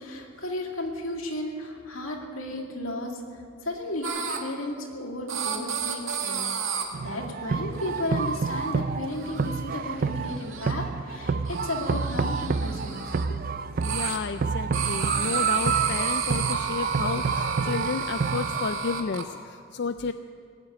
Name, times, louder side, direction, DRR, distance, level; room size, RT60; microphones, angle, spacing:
voice 1, 0.0-13.0, left 1 dB, 85° left, 1 dB, 2.4 m, -34 dB
sound 1, 4.0-4.4 5.3-6.8 7.7-8.0 8.3-8.7 9.1-9.6 9.8-10.7 11.4-13.2 13.8-14.2 14.7-19.2, right 6 dB, 85° right, 1.9 m, -32 dB
sound 2, 6.9-18.7, right 5 dB, 45° right, 0.4 m, -29 dB
voice 2, 13.8-20.1, left 5 dB, 55° left, 10 dB, 0.4 m, -32 dB
19.0 x 8.1 x 9.3 m, 2.2 s
head